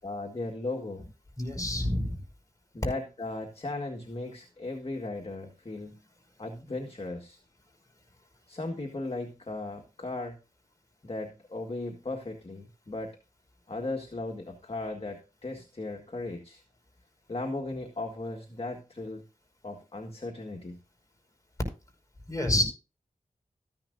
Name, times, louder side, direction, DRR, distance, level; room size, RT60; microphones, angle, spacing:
voice 1, 0.0-1.1 2.7-6.0 6.4-7.4 8.5-10.3 11.0-13.1 13.7-16.6 17.3-19.2 19.6-20.8, left 2 dB, 40° left, 2 dB, 1.7 m, -37 dB
voice 2, 1.4-2.2 22.3-22.6, left 1 dB, 20° left, 2 dB, 5.4 m, -27 dB
14.0 x 10.5 x 2.6 m, 0.32 s
wide cardioid pair, 55°, 15 cm